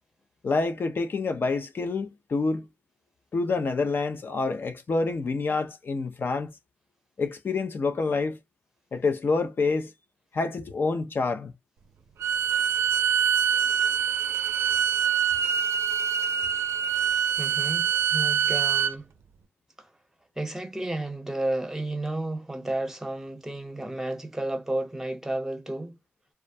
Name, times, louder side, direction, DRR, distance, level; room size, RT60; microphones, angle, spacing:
voice 1, 0.4-2.7 3.3-6.5 7.2-8.4 8.9-9.9 10.3-11.5, left 3 dB, 55° left, 0.5 m, -27 dB
Bowed string instrument, 12.2-18.9, right 8 dB, 85° right, 0.4 m, -25 dB
voice 2, 17.4-19.1 19.8-19.9 20.4-26.0, right 1 dB, 10° right, 0.8 m, -32 dB
2.3 x 2.1 x 2.6 m
cardioid pair, 55°, 4 cm